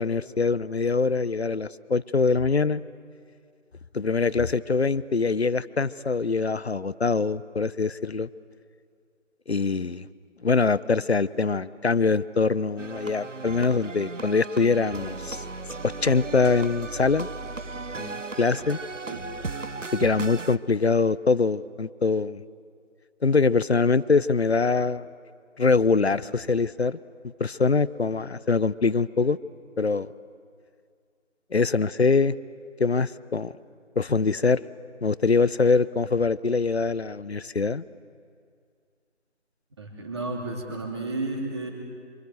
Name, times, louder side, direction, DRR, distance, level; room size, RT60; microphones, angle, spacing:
voice 1, 0.0-2.8 3.9-8.3 9.5-10.1 10.4-15.4 16.0-17.3 18.0-18.8 19.9-22.4 23.2-25.1 25.6-27.0 27.4-29.4 29.8-30.1 31.5-32.3 32.8-33.5 34.0-34.6 35.0-37.8, left 4 dB, 60° left, 18 dB, 0.8 m, -23 dB
sound 1, 12.8-20.6, right 3 dB, 90° right, 1.1 m, -36 dB
voice 2, 39.8-41.7, right 2 dB, 20° right, 0 dB, 3.0 m, -32 dB
26.5 x 26.0 x 7.9 m, 2.2 s
figure-of-eight pair, 165°, 37 cm